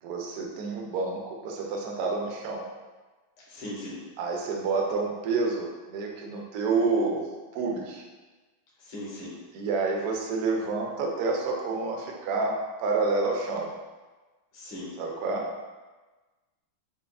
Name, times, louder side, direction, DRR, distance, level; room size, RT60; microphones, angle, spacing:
voice 1, 0.0-2.7 4.2-7.3 7.5-8.0 9.5-13.7 15.0-15.5, right 3 dB, 80° right, 1 dB, 0.8 m, -29 dB
voice 2, 3.5-4.0 8.8-9.4 14.5-14.9, left 1 dB, 65° left, -8 dB, 1.7 m, -38 dB
5.8 x 2.4 x 2.3 m, 1.2 s
omnidirectional pair, 2.2 m